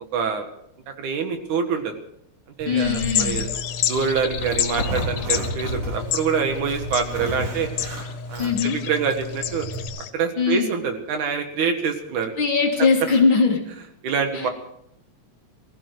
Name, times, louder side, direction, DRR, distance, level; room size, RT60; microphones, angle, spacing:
voice 1, 0.1-0.5 1.0-1.9 2.6-3.5 3.9-7.7 8.3-9.7 10.1-12.3 14.0-14.5, right 6 dB, 75° right, 6 dB, 3.1 m, -25 dB
Zipper (clothing), 2.6-9.9, equal, 55° right, 5.7 m, -32 dB
voice 2, 2.7-3.5 8.4-8.8 10.4-10.7 12.4-13.7 14.3-14.5, left 4 dB, 45° left, 1 dB, 2.2 m, -21 dB
sound 1, 2.8-10.1, left 11 dB, 90° left, 2.5 m, -30 dB
20.0 x 14.5 x 4.8 m, 0.77 s
omnidirectional pair, 3.6 m